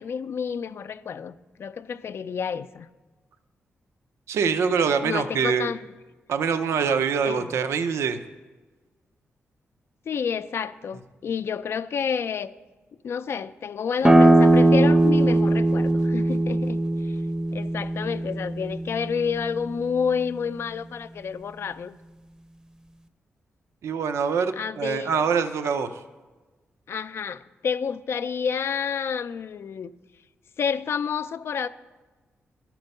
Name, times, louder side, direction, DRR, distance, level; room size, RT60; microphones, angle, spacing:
voice 1, 0.0-2.9 5.0-5.8 7.2-7.5 10.1-12.5 13.0-17.2 17.5-22.0 24.5-25.3 26.9-29.9 30.6-31.7, left 6 dB, 65° left, 13 dB, 0.4 m, -29 dB
voice 2, 4.3-5.7 6.3-8.2 23.8-26.0, right 6 dB, 85° right, 9 dB, 0.5 m, -24 dB
sound 1, 14.0-19.4, right 1 dB, 15° right, 0.6 m, -20 dB
12.5 x 4.5 x 5.3 m, 1.3 s
cardioid pair, 70°, 5 cm